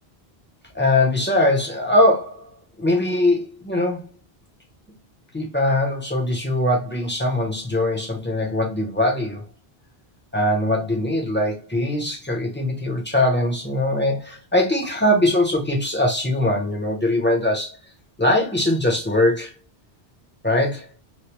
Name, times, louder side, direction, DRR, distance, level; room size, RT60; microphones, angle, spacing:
voice 1, 0.7-2.5 2.8-4.1 5.3-9.4 10.3-17.8 18.2-19.5 20.4-20.9, left 1 dB, 15° left, 0.5 m, -21 dB
3.1 x 2.0 x 2.9 m
omnidirectional pair, 1.1 m